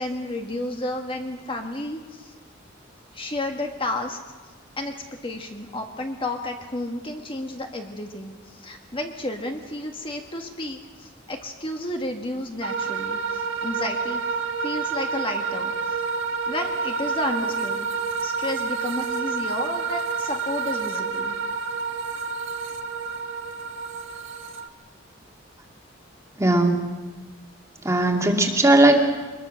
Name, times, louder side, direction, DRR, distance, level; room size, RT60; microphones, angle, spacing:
voice 1, 0.0-2.3 3.1-4.2 4.8-14.2 14.6-16.2 16.5-17.9 18.2-21.3, left 1 dB, 25° left, 3 dB, 1.6 m, -32 dB
sound 1, 12.6-24.7, right 5 dB, 70° right, 1.5 m, -29 dB
voice 2, 26.4-26.9 27.8-29.0, right 1 dB, 15° right, 2 dB, 2.2 m, -18 dB
24.0 x 21.5 x 6.4 m, 1.3 s
head